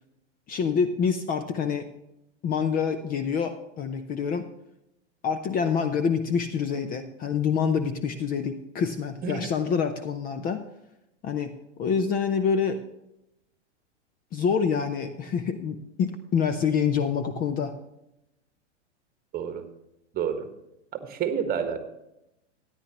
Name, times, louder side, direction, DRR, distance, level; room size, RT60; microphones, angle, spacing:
voice 1, 0.5-1.9 2.4-4.5 5.2-10.6 11.2-11.5 11.8-12.8 14.3-17.7, left 6 dB, 25° left, 9 dB, 0.6 m, -26 dB
voice 2, 9.2-9.5 19.3-19.6 20.1-20.5 20.9-21.8, right 7 dB, 25° right, 7 dB, 1.5 m, -29 dB
14.0 x 10.0 x 3.0 m, 0.85 s
hypercardioid pair, 110°, 36 cm